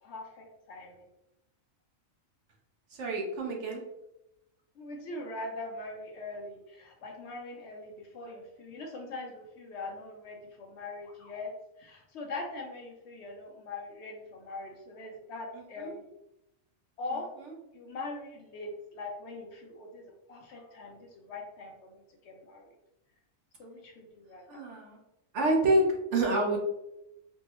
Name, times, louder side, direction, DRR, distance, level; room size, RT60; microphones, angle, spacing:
voice 1, 0.0-1.1 4.8-11.5 11.8-16.0 17.0-17.3 17.7-22.7 23.6-24.6, left 2 dB, 65° left, 2 dB, 0.8 m, -42 dB
voice 2, 2.9-3.8 15.8-15.9 17.4-17.5 24.5-25.0 25.3-26.6, right 1 dB, 65° right, 0 dB, 1.0 m, -27 dB
4.4 x 2.0 x 2.9 m, 0.89 s
omnidirectional pair, 1.4 m